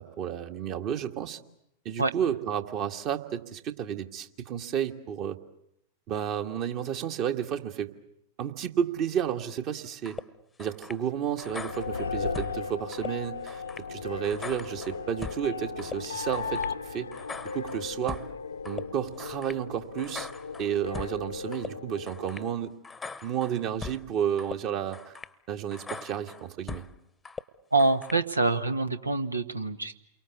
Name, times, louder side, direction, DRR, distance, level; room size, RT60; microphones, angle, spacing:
voice 1, 0.0-1.4 1.8-5.4 6.1-7.9 8.4-10.2 10.6-13.6 13.9-17.1 17.5-18.2 18.6-20.3 20.6-22.7 23.2-25.2 25.5-26.9, right 9 dB, 40° right, 6 dB, 1.7 m, -31 dB
sound 1, 10.1-10.2 10.6-11.0 11.4-12.6 12.9-13.1 13.5-13.9 14.2-15.4 15.8-16.0 16.3-16.7 17.1-18.3 18.7-18.8 19.2-19.6 20.0-21.2 21.5-21.7 22.1-22.5 22.8-24.0 24.4-24.6 24.9-25.3 25.7-26.9 27.2-27.4 27.8-28.2, left 4 dB, 10° left, 1.0 m, -41 dB
sound 2, 11.2-22.5, left 5 dB, 75° left, 1.0 m, -37 dB
voice 2, 27.7-30.0, right 3 dB, 80° right, 10 dB, 1.4 m, -25 dB
29.0 x 23.5 x 8.4 m, 0.75 s
figure-of-eight pair, 90°, 0 cm